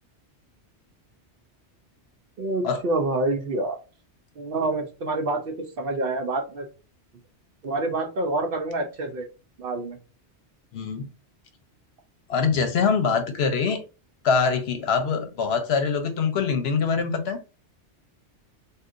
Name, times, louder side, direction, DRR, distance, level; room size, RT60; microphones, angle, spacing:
voice 1, 2.4-3.8 4.4-6.7 7.6-9.2 9.6-10.0, right 2 dB, 60° right, 4 dB, 0.7 m, -27 dB
voice 2, 10.7-11.1 12.3-13.8 14.2-17.4, left 5 dB, 65° left, 8 dB, 0.9 m, -24 dB
3.7 x 2.7 x 2.4 m, 0.32 s
omnidirectional pair, 1.2 m